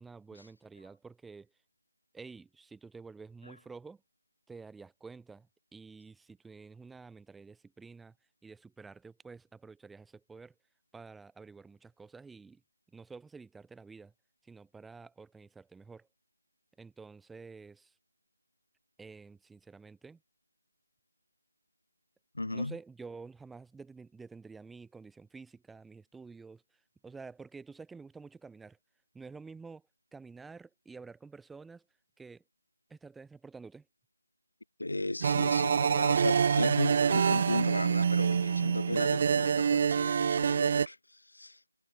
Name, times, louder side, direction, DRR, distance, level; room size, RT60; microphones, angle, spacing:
voice 1, 0.0-1.5 2.1-4.0 4.5-8.2 8.4-10.5 10.9-12.6 12.9-14.1 14.4-16.1 16.8-17.9 19.0-20.2 22.5-26.6 27.0-28.8 29.1-29.8 30.1-31.8 32.2-32.4 32.9-33.9, right 4 dB, ahead, 5.5 m, -50 dB
voice 2, 22.3-22.7 34.8-41.7, left 2 dB, 85° left, 5.0 m, -35 dB
sound 1, 35.2-40.9, right 7 dB, 30° right, 0.6 m, -26 dB
figure-of-eight pair, 170°, 0 cm